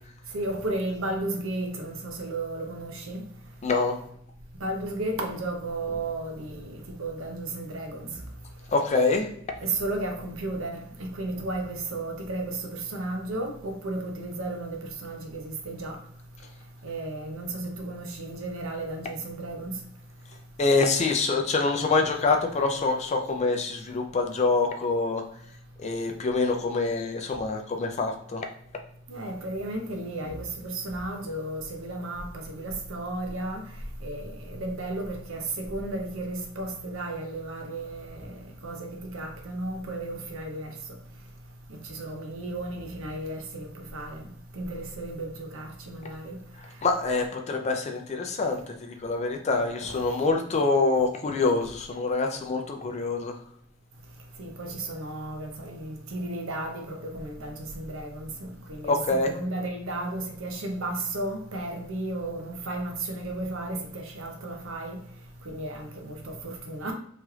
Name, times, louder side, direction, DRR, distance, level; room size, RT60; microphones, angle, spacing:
voice 1, 0.3-3.2 4.6-8.2 9.6-16.0 16.8-19.8 29.1-33.6 34.0-40.7 41.8-46.4 49.9-50.0 54.4-65.0 65.4-66.9, right 2 dB, 65° right, 0.6 m, -34 dB
voice 2, 3.6-4.0 8.7-9.3 20.6-25.2 25.8-28.5 46.8-53.4 58.9-59.3, left 3 dB, 30° left, 0.4 m, -25 dB
3.0 x 2.4 x 3.1 m
head